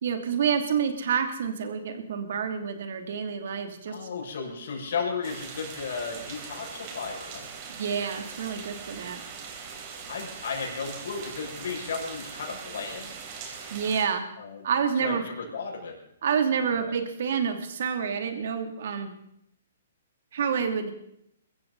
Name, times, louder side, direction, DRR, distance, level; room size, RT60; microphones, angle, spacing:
voice 1, 0.0-3.9 7.7-9.2 13.7-14.2 14.6-15.2 16.2-19.1 20.3-20.9, right 7 dB, 65° right, 6 dB, 3.0 m, -28 dB
voice 2, 3.9-7.5 10.1-13.2 14.4-14.7 15.0-16.0 16.7-16.9, left 5 dB, 65° left, 0 dB, 6.5 m, -34 dB
sound 1, 5.2-14.0, right 6 dB, 40° right, 4.0 m, -41 dB
23.0 x 15.0 x 4.2 m, 0.74 s
hypercardioid pair, 145°, 0 cm